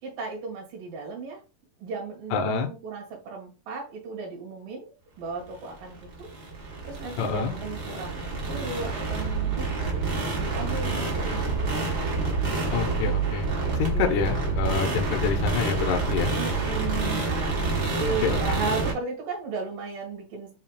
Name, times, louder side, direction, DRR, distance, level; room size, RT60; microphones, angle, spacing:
voice 1, 0.0-1.4 1.8-6.3 6.8-10.0 10.3-11.9 13.9-14.4 16.4-17.7 18.0-20.5, right 4 dB, 80° right, -1 dB, 3.3 m, -35 dB
voice 2, 2.3-2.7 7.2-7.5 12.7-13.5 13.8-16.3 18.2-18.4, left 6 dB, 80° left, 4 dB, 1.9 m, -27 dB
sound 1, 5.6-18.9, right 3 dB, 50° right, 1.2 m, -28 dB
7.2 x 2.7 x 2.3 m, 0.31 s
omnidirectional pair, 3.8 m